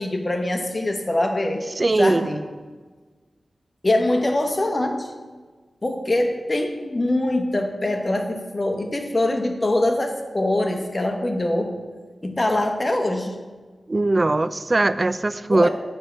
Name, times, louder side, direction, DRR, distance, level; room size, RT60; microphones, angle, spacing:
voice 1, 0.0-2.4 3.8-5.1 5.8-11.7 12.2-13.4 15.5-15.7, left 1 dB, 35° left, 4 dB, 1.0 m, -23 dB
voice 2, 1.8-2.3 13.9-15.7, right 2 dB, 40° right, 14 dB, 0.3 m, -20 dB
9.5 x 3.5 x 6.3 m, 1.4 s
cardioid pair, 45°, 0 cm